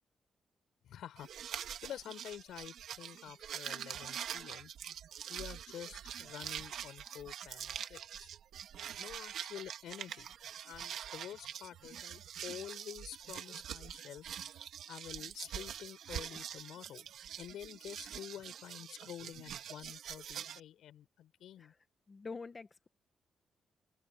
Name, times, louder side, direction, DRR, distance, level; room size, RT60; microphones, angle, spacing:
voice 1, 0.8-1.3 1.8-4.7 5.3-8.3 9.0-10.3 10.6-14.2 14.9-17.1 17.4-21.7, left 11 dB, 90° left, 6.6 m, -49 dB
sound 1, 1.2-20.6, right 9 dB, 75° right, 1.8 m, -45 dB
voice 2, 22.1-22.9, left 4 dB, 25° left, 0.9 m, -46 dB
cardioid pair, 145°, 0 cm